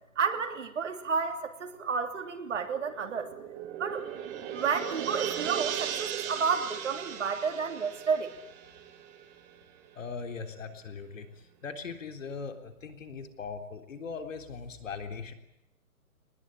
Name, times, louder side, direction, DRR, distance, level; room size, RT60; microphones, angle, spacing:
voice 1, 0.1-3.3 3.8-4.0 4.5-8.3, right 5 dB, 55° right, 5 dB, 3.3 m, -31 dB
sound 1, 2.6-9.6 9.9-10.0, right 9 dB, 15° right, 1.4 m, -37 dB
voice 2, 9.9-15.3, left 5 dB, 60° left, 6 dB, 3.6 m, -40 dB
22.0 x 20.5 x 9.9 m, 0.82 s
hypercardioid pair, 160°, 44 cm